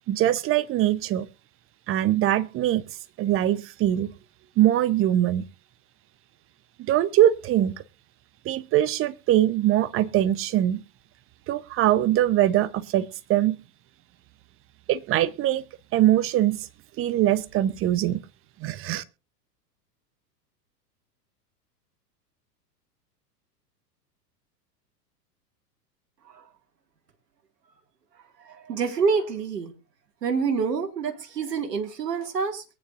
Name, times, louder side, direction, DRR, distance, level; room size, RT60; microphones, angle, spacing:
voice 1, 0.1-1.3 1.9-2.8 3.2-4.1 4.6-5.4 6.9-7.8 8.4-10.8 11.5-13.6 14.9-15.6 15.9-16.7 17.0-18.2 18.6-19.0, right 12 dB, 25° right, 0.8 m, -22 dB
voice 2, 28.4-29.7 30.2-32.6, right 5 dB, 75° right, 2.1 m, -27 dB
23.0 x 9.3 x 2.5 m
figure-of-eight pair, 95°, 49 cm